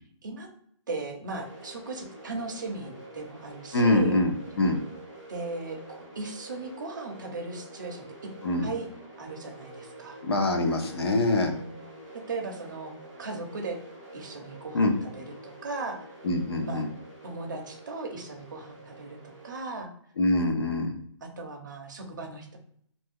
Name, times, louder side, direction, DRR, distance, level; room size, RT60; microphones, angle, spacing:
voice 1, 0.9-4.2 5.3-8.1 8.6-8.9 9.2-10.2 11.5-11.8 12.3-12.9 13.2-13.8 14.1-16.1 16.6-16.8 17.2-19.9 21.2-22.6, right 3 dB, 40° right, 2 dB, 0.6 m, -37 dB
sound 1, 1.3-19.6, right 2 dB, 5° left, 0.6 m, -47 dB
voice 2, 3.7-4.3 4.6-4.8 8.4-8.7 10.2-11.5 14.7-14.9 16.2-16.9 20.2-20.9, left 2 dB, 50° left, 5 dB, 0.6 m, -24 dB
2.5 x 2.2 x 3.5 m, 0.65 s
hypercardioid pair, 175°, 16 cm